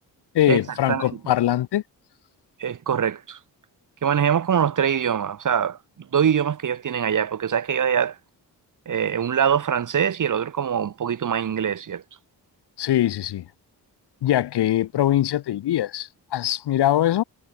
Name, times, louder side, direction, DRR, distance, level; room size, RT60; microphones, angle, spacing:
voice 1, 0.3-1.8 12.8-13.5 14.2-17.2, left 12 dB, 65° left, 0.7 m, -22 dB
voice 2, 2.6-3.4 4.0-8.2 8.9-12.0, right 8 dB, 45° right, 0.9 m, -23 dB
supercardioid pair, 45°, 44 cm